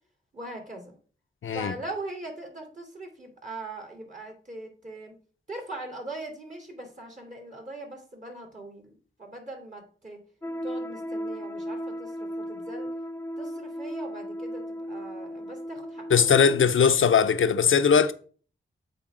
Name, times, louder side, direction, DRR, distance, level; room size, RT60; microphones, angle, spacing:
voice 1, 0.3-0.9 1.5-5.1 5.5-10.2 10.6-12.9 13.4-16.6, right 2 dB, 35° right, 2.7 m, -40 dB
voice 2, 1.4-1.7 16.1-18.1, left 6 dB, 70° left, 0.7 m, -20 dB
sound 1, 10.4-16.7, equal, 10° left, 0.3 m, -36 dB
8.0 x 3.5 x 6.2 m
cardioid pair, 55°, 21 cm